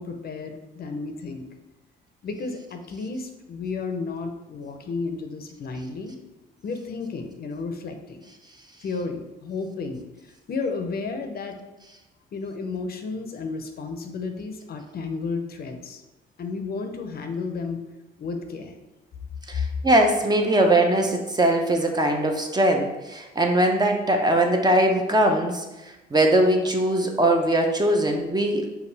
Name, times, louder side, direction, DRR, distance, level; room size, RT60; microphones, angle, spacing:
voice 1, 0.0-1.4 2.2-6.2 6.6-8.2 8.8-11.6 12.3-16.0 16.4-17.8 18.2-18.7, left 4 dB, 50° left, 6 dB, 0.6 m, -32 dB
voice 2, 19.5-25.6 26.1-28.6, right 1 dB, 20° right, 2 dB, 0.6 m, -21 dB
5.2 x 2.4 x 4.0 m, 1.0 s
cardioid pair, 90°, 20 cm